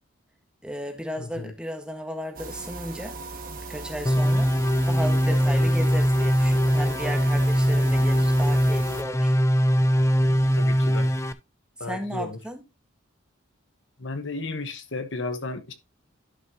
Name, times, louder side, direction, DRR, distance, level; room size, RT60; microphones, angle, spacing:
voice 1, 0.6-3.2 3.7-4.5 4.9-9.4 11.8-12.6, equal, 5° right, 1.5 m, -35 dB
voice 2, 1.2-1.5 10.5-11.1 11.8-12.4 14.0-15.7, left 3 dB, 65° left, 1.3 m, -33 dB
sound 1, 2.3-9.0, right 3 dB, 45° right, 1.5 m, -38 dB
sound 2, 4.1-11.3, equal, 15° left, 0.6 m, -21 dB
12.0 x 6.0 x 2.9 m
head